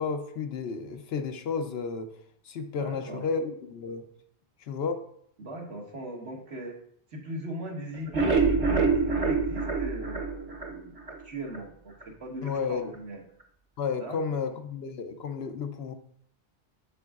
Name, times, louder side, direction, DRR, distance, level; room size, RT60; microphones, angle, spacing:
voice 1, 0.0-2.1 2.4-4.0 4.6-5.0 12.4-12.9 13.8-15.9, left 5 dB, 70° left, 7 dB, 0.9 m, -32 dB
voice 2, 2.8-3.3 5.4-6.8 7.1-13.2 14.0-14.4, right 1 dB, 85° right, 0 dB, 1.5 m, -39 dB
sound 1, 7.9-11.2 11.5-11.6 12.0-12.1 12.5-12.6, right 4 dB, 35° right, 0.8 m, -26 dB
7.2 x 6.9 x 2.4 m, 0.65 s
omnidirectional pair, 1.1 m